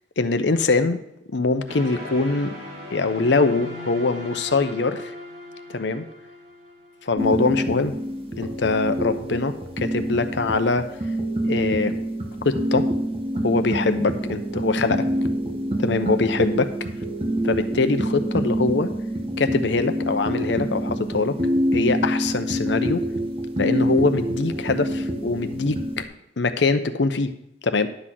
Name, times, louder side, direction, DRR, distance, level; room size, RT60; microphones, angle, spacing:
voice 1, 0.2-1.0 1.3-2.5 2.9-5.1 5.7-6.0 7.0-7.9 8.4-10.9 11.4-11.9 12.4-12.9 13.4-15.1 15.8-16.7 17.4-18.9 19.4-21.4 21.7-23.0 23.6-26.1 26.4-27.3 27.6-27.9, left 3 dB, 70° left, 10 dB, 0.7 m, -23 dB
sound 1, 1.7-7.6, left 1 dB, 60° right, 2.6 m, -38 dB
sound 2, 7.2-26.0, equal, 30° right, 1.0 m, -26 dB
11.5 x 4.1 x 7.5 m, 0.81 s
head